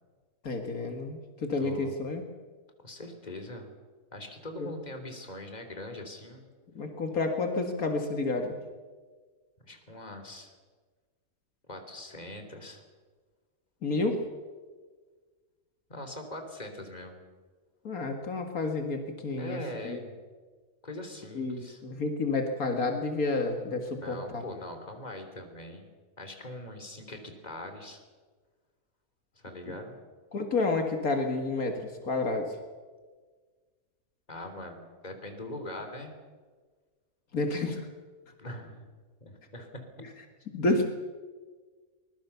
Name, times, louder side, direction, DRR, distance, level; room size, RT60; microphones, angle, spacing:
voice 1, 0.4-2.2 4.6-4.7 6.7-8.6 13.8-14.2 17.8-20.0 21.3-24.4 29.7-29.8 30.3-32.6 37.3-37.8 40.0-40.1 40.5-40.9, left 3 dB, 75° left, 5 dB, 2.4 m, -30 dB
voice 2, 1.6-1.9 2.8-3.7 4.1-6.5 9.6-10.5 11.7-12.8 15.9-17.2 19.4-20.1 20.8-21.8 24.0-25.8 26.2-28.0 29.4-30.0 34.3-36.1 37.5-37.6 38.4-38.9 39.2-39.9, left 1 dB, 30° left, 5 dB, 3.4 m, -42 dB
24.0 x 21.0 x 7.0 m, 1.4 s
omnidirectional pair, 1.5 m